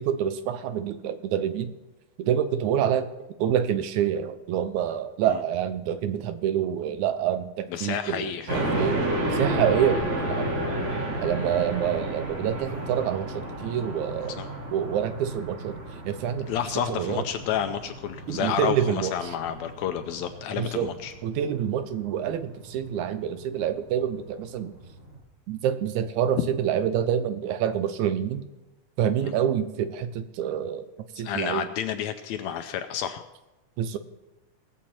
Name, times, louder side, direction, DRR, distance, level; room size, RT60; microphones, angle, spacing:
voice 1, 0.0-1.7 2.2-3.1 3.4-9.0 9.3-10.5 11.2-14.4 14.7-15.8 16.1-16.5 16.9-17.2 18.3-19.1 20.6-20.9 21.2-24.7 25.5-28.4 29.0-30.9 31.2-31.7 33.8-34.0, right 9 dB, 75° right, 11 dB, 2.0 m, -27 dB
voice 2, 7.7-8.7 14.4-14.5 16.5-21.1 26.4-26.5 29.2-29.3 31.2-33.2, left 9 dB, 80° left, 8 dB, 1.7 m, -30 dB
sound 1, 8.5-25.2, right 1 dB, 60° right, 3.0 m, -32 dB
19.5 x 7.4 x 4.4 m, 1.1 s
omnidirectional pair, 3.6 m